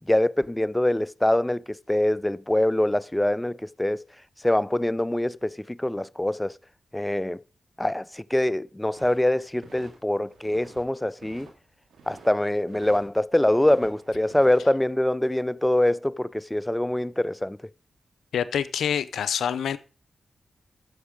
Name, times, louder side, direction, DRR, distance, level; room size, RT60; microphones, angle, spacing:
voice 1, 0.1-1.6 1.9-4.0 4.4-6.6 6.9-7.4 7.8-11.5 12.1-17.6, left 1 dB, 10° left, 0.4 m, -24 dB
sound 1, 8.9-10.0 10.3-10.8 11.1-12.3 12.7-13.1 13.4-14.6, right 4 dB, 85° right, 2.3 m, -49 dB
voice 2, 18.3-19.8, left 8 dB, 85° left, 0.5 m, -26 dB
9.5 x 6.3 x 5.1 m
supercardioid pair, 45°, 0 cm